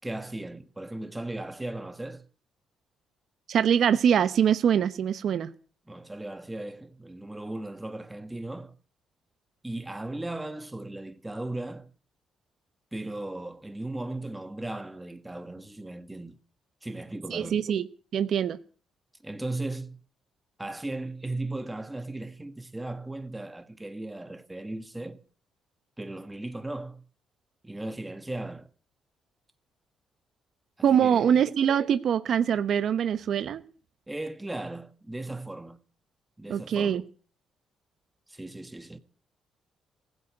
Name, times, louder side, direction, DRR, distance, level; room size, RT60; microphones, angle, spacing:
voice 1, 0.0-2.3 5.9-8.8 9.6-11.9 12.9-16.4 16.8-17.6 19.2-20.0 20.6-25.2 26.0-27.0 27.6-28.7 30.8-31.4 34.1-35.8 36.4-37.1 38.3-39.0, right 2 dB, 10° right, 1.5 m, -37 dB
voice 2, 3.5-5.5 17.3-17.8 18.1-18.6 30.8-33.6 36.5-37.0, right 8 dB, 65° right, 0.9 m, -23 dB
16.0 x 8.1 x 9.2 m
cardioid pair, 90°, 0 cm